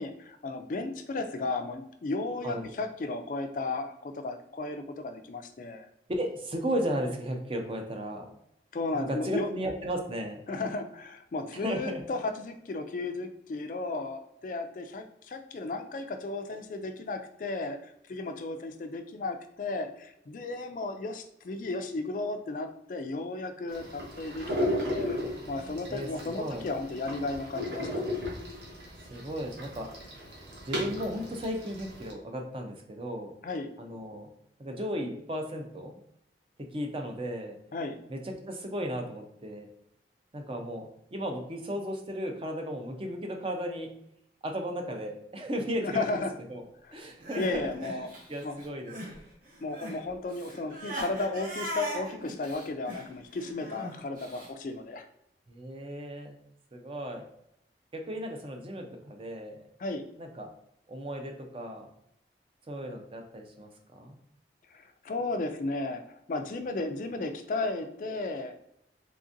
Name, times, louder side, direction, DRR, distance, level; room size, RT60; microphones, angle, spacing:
voice 1, 0.0-5.9 8.7-9.5 10.5-25.2 25.5-28.3 33.4-33.7 37.7-38.0 45.8-46.3 46.9-47.1 47.4-48.1 48.4-48.6 49.6-55.0 59.8-60.0 64.7-68.5, left 3 dB, 45° left, 7 dB, 0.3 m, -34 dB
voice 2, 6.1-8.3 8.9-10.4 11.6-12.0 25.9-26.1 26.4-26.7 29.1-29.9 30.6-33.3 33.8-34.3 34.6-36.0 36.6-37.6 38.1-39.7 40.3-43.9 44.4-46.1 46.5-46.6 46.9-47.9 48.3-49.2 55.5-56.4 56.7-57.3 57.9-59.6 60.2-60.5 60.9-61.9 62.7-64.1, equal, 30° right, 2 dB, 0.5 m, -35 dB
sound 1, 23.7-32.1, left 1 dB, 80° right, 1.0 m, -35 dB
Crying sobbing, 47.0-49.2 49.4-54.5, right 1 dB, 50° right, 0.8 m, -40 dB
3.8 x 3.4 x 2.6 m, 0.79 s
head